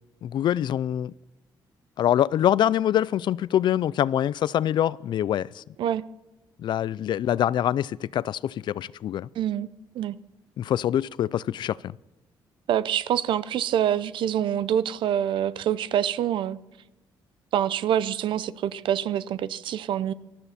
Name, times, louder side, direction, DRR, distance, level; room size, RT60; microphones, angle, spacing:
voice 1, 0.2-1.1 2.0-5.6 6.6-9.3 10.6-11.9, left 11 dB, 65° left, 0.4 m, -25 dB
voice 2, 9.4-9.7 9.9-10.2 12.7-16.6 17.5-20.1, right 10 dB, 75° right, 0.6 m, -26 dB
19.0 x 13.0 x 4.2 m
cardioid pair, 100°, 8 cm